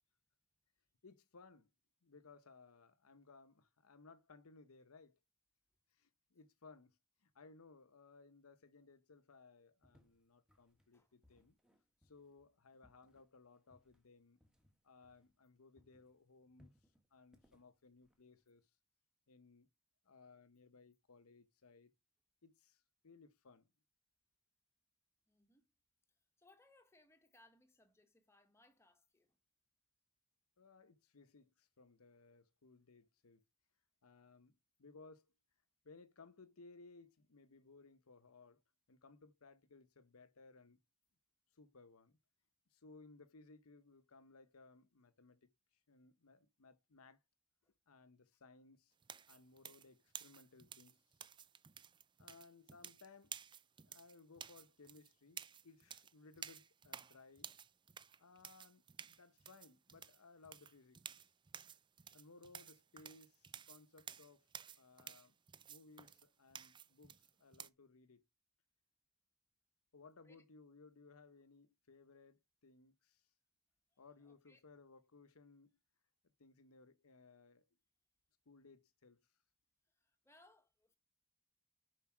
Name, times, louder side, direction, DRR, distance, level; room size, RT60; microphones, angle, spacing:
voice 1, 1.0-1.7 2.0-5.2 5.9-11.6 12.0-14.4 14.8-16.7 17.1-18.7 19.3-19.7 20.0-21.9 22.4-23.7 30.6-33.4 34.0-35.3 35.8-38.6 38.9-40.8 41.5-42.2 42.7-45.5 45.9-47.2 47.9-48.9 49.3-51.0 52.2-53.4 53.8-57.5 58.2-61.3 62.1-64.5 64.8-65.4 65.7-68.2 69.9-73.3 74.0-75.8 76.4-77.7 78.5-79.2, left 3 dB, 85° left, 0.9 m, -62 dB
sound 1, 9.8-15.5 15.8-18.7, equal, 5° right, 1.6 m, -72 dB
voice 2, 25.3-25.7 26.4-29.4 70.2-70.4 74.2-74.6 79.9-81.0, left 2 dB, 10° left, 1.4 m, -69 dB
sound 2, 49.0-67.7, right 8 dB, 20° right, 0.4 m, -53 dB
7.2 x 5.4 x 6.0 m
head